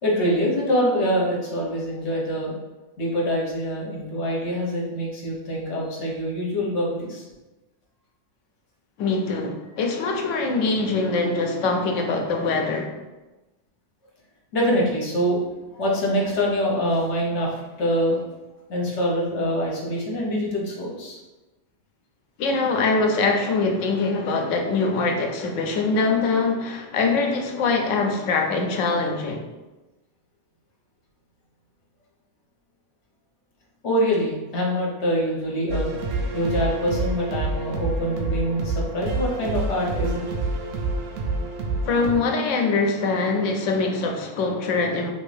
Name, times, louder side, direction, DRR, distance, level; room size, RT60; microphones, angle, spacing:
voice 1, 0.0-2.5 3.0-7.2 14.5-15.4 15.7-18.3 18.7-21.2 33.8-35.9 36.3-40.2, equal, 70° left, -3 dB, 1.1 m, -24 dB
voice 2, 9.0-12.9 22.4-29.4 41.8-45.1, left 3 dB, 90° left, 3 dB, 0.9 m, -23 dB
sound 1, 35.7-42.1, right 3 dB, 85° right, 0.9 m, -28 dB
2.9 x 2.6 x 3.2 m, 1.1 s
omnidirectional pair, 1.3 m